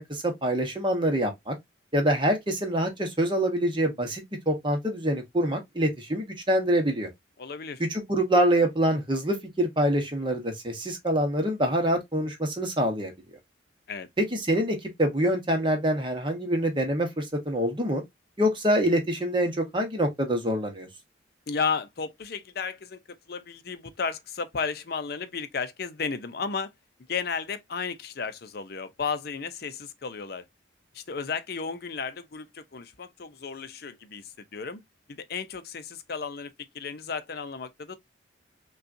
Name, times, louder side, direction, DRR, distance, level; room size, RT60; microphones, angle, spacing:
voice 1, 0.0-1.5 1.9-7.1 7.8-13.1 14.2-18.0 18.4-20.9, right 1 dB, 25° right, 1.0 m, -25 dB
voice 2, 7.4-7.8 13.9-14.1 21.5-26.7 27.1-30.4 30.9-34.8 35.1-38.0, left 5 dB, 55° left, 0.5 m, -33 dB
5.4 x 2.4 x 2.6 m
head